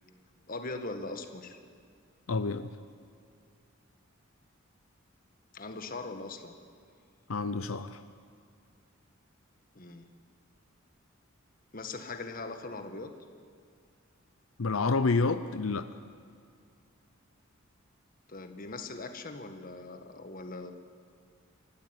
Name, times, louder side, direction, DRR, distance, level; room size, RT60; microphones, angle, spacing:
voice 1, 0.5-1.6 5.5-6.5 9.7-10.1 11.7-13.1 18.3-20.7, left 3 dB, 45° left, 6 dB, 1.6 m, -40 dB
voice 2, 2.3-2.7 7.3-8.0 14.6-15.9, left 3 dB, 90° left, 11 dB, 0.7 m, -28 dB
24.5 x 14.5 x 9.6 m, 2.2 s
head